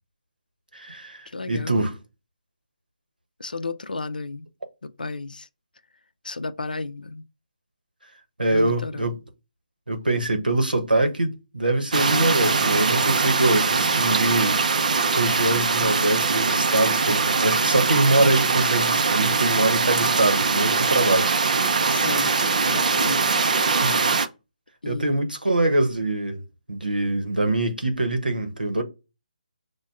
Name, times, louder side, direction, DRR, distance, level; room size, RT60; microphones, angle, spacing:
voice 1, 0.7-2.0 8.4-9.2 9.9-14.6 15.1-21.4 23.8-24.1 24.8-26.4 26.7-28.8, right 2 dB, 90° right, 0.9 m, -23 dB
voice 2, 1.3-1.9 3.4-4.5 4.8-5.5 6.2-7.2 8.5-9.1 21.9-22.3 22.7-23.3 24.8-25.3, left 3 dB, 80° left, 0.5 m, -32 dB
sound 1, 11.9-24.3, right 4 dB, 60° right, 0.5 m, -22 dB
6.1 x 2.2 x 2.4 m
figure-of-eight pair, 145°, 5 cm